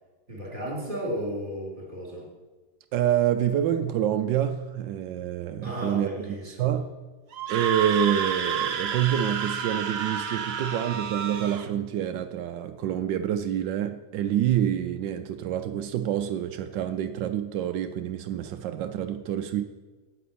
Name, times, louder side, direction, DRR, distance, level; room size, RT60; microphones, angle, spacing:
voice 1, 0.3-2.3 5.6-6.8 10.4-10.7, equal, 25° right, 3.7 m, -34 dB
voice 2, 2.9-6.3 6.6-6.9 7.5-19.6, right 10 dB, 85° right, 1.3 m, -27 dB
Screaming, 7.3-11.7, right 7 dB, 55° right, 0.7 m, -30 dB
9.1 x 7.7 x 8.6 m
omnidirectional pair, 1.9 m